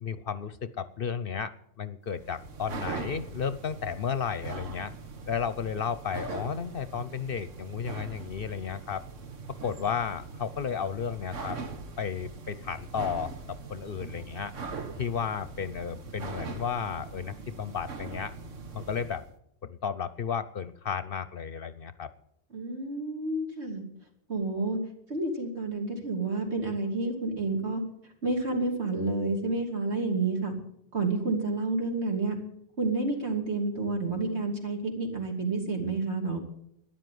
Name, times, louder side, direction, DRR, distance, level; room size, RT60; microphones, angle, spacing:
voice 1, 0.0-4.9 5.3-9.0 9.5-11.6 12.0-14.5 15.0-18.3 18.7-19.2 19.6-22.1, left 7 dB, 55° left, 14 dB, 0.8 m, -33 dB
sound 1, 2.1-19.3, right 4 dB, 90° right, 1.6 m, -41 dB
voice 2, 22.5-23.8 24.3-24.8 25.1-27.8 28.2-30.5 30.9-32.4 32.8-36.4, right 3 dB, 65° right, 1 dB, 3.2 m, -29 dB
13.0 x 10.5 x 9.3 m, 0.74 s
omnidirectional pair, 1.2 m